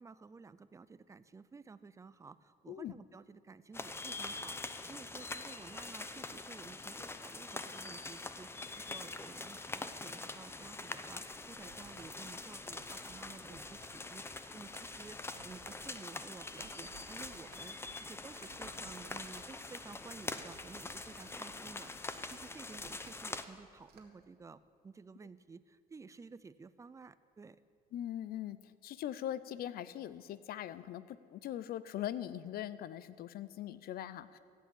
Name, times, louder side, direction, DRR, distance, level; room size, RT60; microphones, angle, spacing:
voice 1, 0.0-15.2 15.4-27.6, right 4 dB, 20° right, 15 dB, 0.5 m, -53 dB
sound 1, 3.7-23.4, left 3 dB, 15° left, 0.7 m, -44 dB
sound 2, 11.3-24.0, right 5 dB, 75° right, 1.9 m, -61 dB
voice 2, 27.9-34.4, left 11 dB, 65° left, 16 dB, 0.6 m, -41 dB
15.0 x 8.3 x 8.5 m, 2.3 s
cardioid pair, 110°, 17 cm